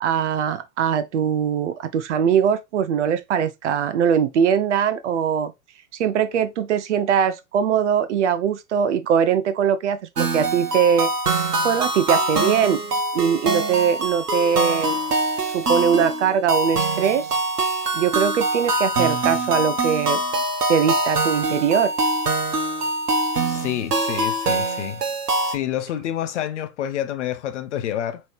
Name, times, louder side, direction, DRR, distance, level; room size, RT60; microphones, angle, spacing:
voice 1, 0.0-5.5 5.9-11.1 11.6-12.8 13.1-15.0 15.5-17.4 17.9-20.2 20.7-21.9, right 8 dB, 50° right, 0.7 m, -21 dB
sound 1, 10.2-25.6, right 2 dB, 80° right, 1.0 m, -24 dB
voice 2, 23.5-25.0 25.5-28.2, left 11 dB, 50° left, 0.8 m, -28 dB
5.2 x 3.1 x 3.1 m
figure-of-eight pair, 105°, 47 cm